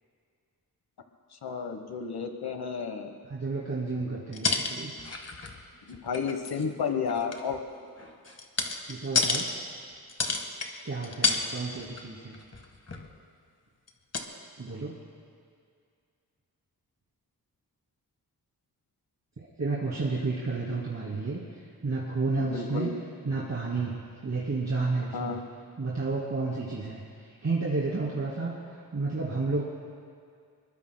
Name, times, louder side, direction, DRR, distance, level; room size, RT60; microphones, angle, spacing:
voice 1, 1.3-3.1 5.9-7.6 22.4-22.9 25.1-25.4, left 6 dB, 85° left, 6 dB, 1.1 m, -32 dB
voice 2, 3.3-4.9 8.9-9.5 10.8-12.3 14.6-14.9 19.4-22.9 23.3-25.4 25.8-29.6, right 3 dB, 45° right, -7 dB, 2.6 m, -31 dB
sound 1, 4.3-5.6 5.9-6.6 7.1-9.5 10.1-10.7 11.0-11.5 11.7-12.0 12.3-13.1 13.9-14.0 14.1-14.2, left 4 dB, 40° left, 1.5 m, -30 dB
26.0 x 22.0 x 2.2 m, 2.2 s
wide cardioid pair, 100°, 37 cm